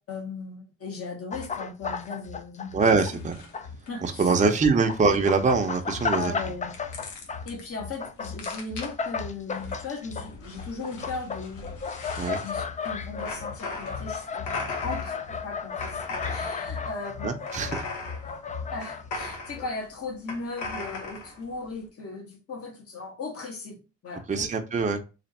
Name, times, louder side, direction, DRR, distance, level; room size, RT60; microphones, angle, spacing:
voice 1, 0.1-2.8 3.9-4.4 4.6-4.8 6.1-6.7 7.4-11.7 12.4-14.5 14.8-17.3 18.7-23.8 24.0-24.5, left 3 dB, 50° left, -1 dB, 1.4 m, -37 dB
sound 1, 1.3-3.8 4.1-19.1 19.5-19.7, left 5 dB, 25° left, 0.4 m, -34 dB
voice 2, 2.7-3.4 4.0-6.3 12.2-12.4 17.2-17.9 24.3-25.0, right 4 dB, 25° right, 4 dB, 0.6 m, -23 dB
sound 2, 3.1-21.8, left 3 dB, 80° left, 1.1 m, -40 dB
3.3 x 2.5 x 4.1 m, 0.30 s
cardioid pair, 90°, 30 cm